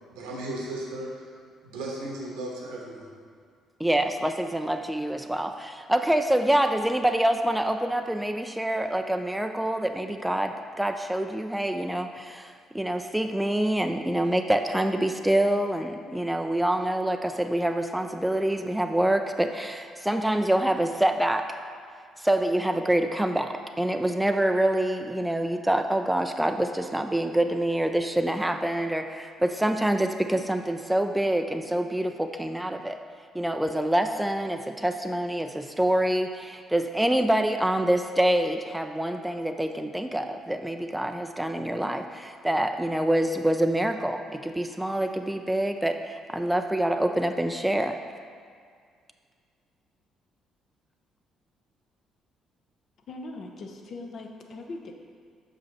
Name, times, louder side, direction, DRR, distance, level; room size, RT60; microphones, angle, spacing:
voice 1, 0.1-1.1 1.6-3.1, right 1 dB, 80° right, -2 dB, 1.2 m, -35 dB
voice 2, 3.8-21.5 22.2-33.0 33.3-48.0, right 1 dB, 5° right, 6 dB, 0.4 m, -26 dB
voice 3, 53.1-54.9, left 2 dB, 55° left, 2 dB, 0.8 m, -40 dB
6.2 x 5.2 x 4.1 m, 2.1 s
hypercardioid pair, 50°, 0 cm